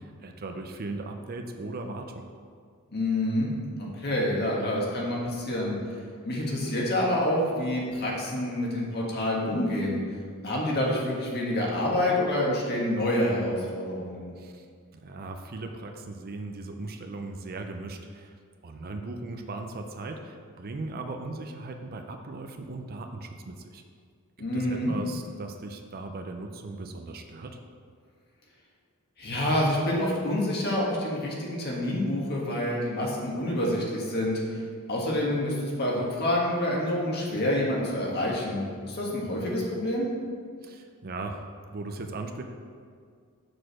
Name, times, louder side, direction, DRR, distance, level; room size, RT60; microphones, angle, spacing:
voice 1, 0.0-2.3 14.4-14.7 15.0-18.3 18.6-23.8 24.5-27.6 40.6-41.4 41.7-42.4, right 2 dB, 45° right, 4 dB, 0.5 m, -38 dB
voice 2, 2.9-3.5 3.8-5.8 6.2-10.0 10.4-14.3 24.4-24.9 29.2-34.6 34.9-40.1, left 1 dB, 45° left, -3 dB, 1.5 m, -27 dB
6.2 x 4.8 x 6.2 m, 2.1 s
head